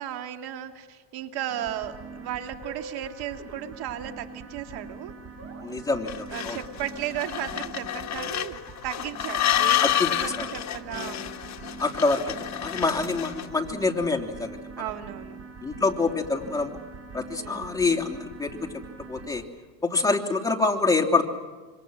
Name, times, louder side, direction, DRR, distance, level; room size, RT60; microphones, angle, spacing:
voice 1, 0.0-5.1 6.3-11.4 12.7-13.1 14.8-15.4 17.4-17.8, right 11 dB, 60° right, 7 dB, 2.2 m, -35 dB
sound 1, 1.5-19.3, right 4 dB, 35° right, 6.9 m, -43 dB
voice 2, 5.6-6.6 9.8-10.1 10.4-10.5 11.8-14.6 15.6-16.8 17.1-18.6 19.1-19.4 19.8-21.3, left 3 dB, 10° left, 0 dB, 2.9 m, -26 dB
sound 2, 6.1-13.6, left 12 dB, 40° left, 1.5 m, -29 dB
26.5 x 25.5 x 6.3 m, 1.4 s
supercardioid pair, 110°, 44 cm